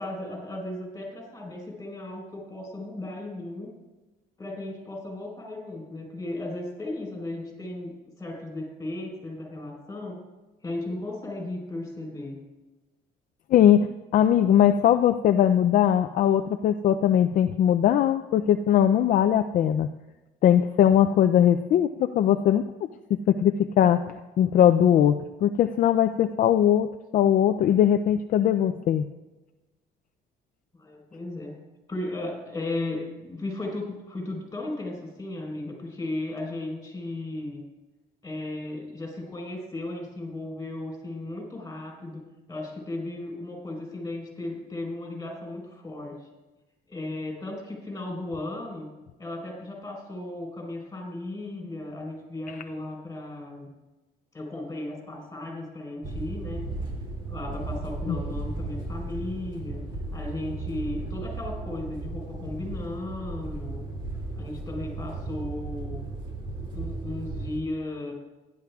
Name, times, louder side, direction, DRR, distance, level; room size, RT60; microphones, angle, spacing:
voice 1, 0.0-3.7 4.4-10.2 10.6-12.4 30.8-31.6 31.9-37.6 38.2-42.2 42.5-46.1 46.9-48.9 49.2-53.7 54.3-56.7 57.3-59.8 60.1-63.8 64.3-66.0 66.7-68.1, left 2 dB, 20° left, 0 dB, 4.2 m, -35 dB
voice 2, 13.5-19.9 20.4-25.2 25.4-29.0 58.1-58.2, left 10 dB, 55° left, 7 dB, 0.4 m, -20 dB
sound 1, 56.0-67.6, right 2 dB, 25° right, 1.9 m, -35 dB
16.5 x 10.5 x 2.4 m, 1.1 s
cardioid pair, 110°, 17 cm